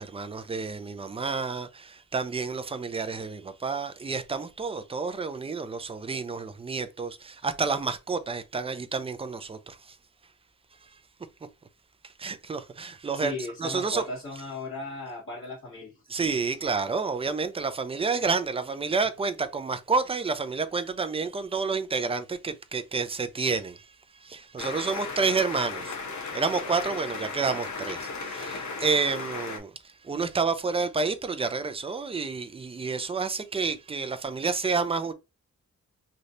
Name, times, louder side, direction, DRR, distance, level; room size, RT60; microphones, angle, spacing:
voice 1, 0.0-9.9 12.2-14.0 16.1-23.9 24.2-26.0 26.3-29.7 30.0-35.1, right 4 dB, 20° right, 0.3 m, -29 dB
voice 2, 13.1-16.0, left 3 dB, 40° left, 1.9 m, -36 dB
sound 1, 24.6-29.6, left 4 dB, 65° left, 0.9 m, -36 dB
3.2 x 2.7 x 2.5 m
wide cardioid pair, 130°, 32 cm